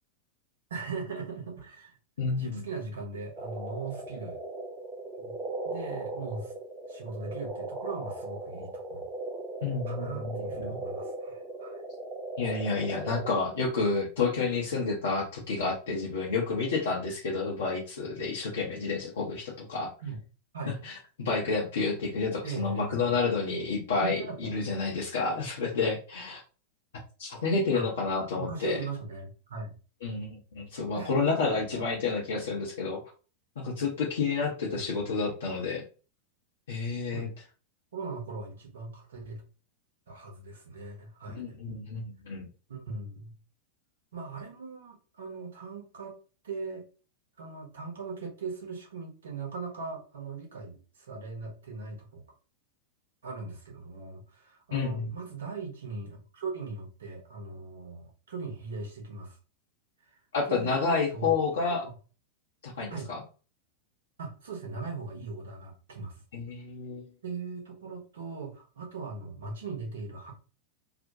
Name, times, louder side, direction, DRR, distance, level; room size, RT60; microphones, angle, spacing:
voice 1, 0.7-2.0 2.3-4.4 5.2-5.4 5.6-6.5 6.9-9.1 9.9-11.8 20.0-20.2 20.5-20.8 22.4-23.1 24.0-24.6 27.7-27.9 28.4-29.8 30.9-31.8 34.7-34.8 37.1-37.3 37.9-39.4 40.1-41.6 42.7-43.3 44.1-46.2 46.4-46.9 47.4-52.2 53.2-59.4 60.1-60.2 60.5-61.9 62.9-63.1 64.2-66.1 67.2-70.3, right 4 dB, 65° right, 0 dB, 0.8 m, -39 dB
voice 2, 2.2-2.6 9.6-10.8 12.4-19.9 20.7-26.4 27.2-28.8 30.0-33.0 33.6-35.8 36.7-37.3 41.3-42.5 54.7-55.1 60.3-61.8 62.6-63.2 66.3-67.0, left 4 dB, 60° left, -4 dB, 0.6 m, -30 dB
sound 1, 3.4-13.5, right 2 dB, 20° right, 0.7 m, -38 dB
2.4 x 2.1 x 2.6 m, 0.36 s
figure-of-eight pair, 90°, 0 cm